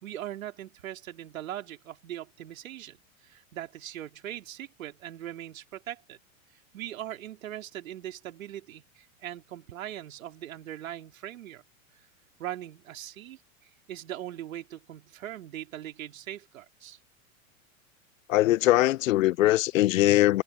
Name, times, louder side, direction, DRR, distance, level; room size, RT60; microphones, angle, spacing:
voice 1, 0.0-6.2 6.5-11.6 11.9-12.1 12.4-17.0, right 12 dB, 70° right, 4.0 m, -40 dB
voice 2, 18.3-20.4, left 16 dB, 65° left, 0.7 m, -21 dB
hypercardioid pair, 100°, 42 cm